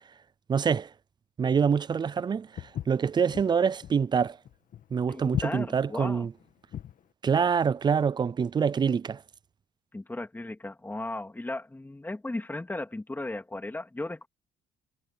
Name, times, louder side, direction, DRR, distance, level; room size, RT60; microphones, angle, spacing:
voice 1, 0.5-0.9 1.4-4.4 4.9-6.3 7.2-9.2, right 6 dB, 25° right, 0.4 m, -26 dB
Walk footsteps, 2.6-7.0, left 10 dB, 50° left, 1.4 m, -37 dB
voice 2, 5.1-6.3 9.9-14.3, left 2 dB, 10° left, 2.8 m, -36 dB
cardioid pair, 110°, 17 cm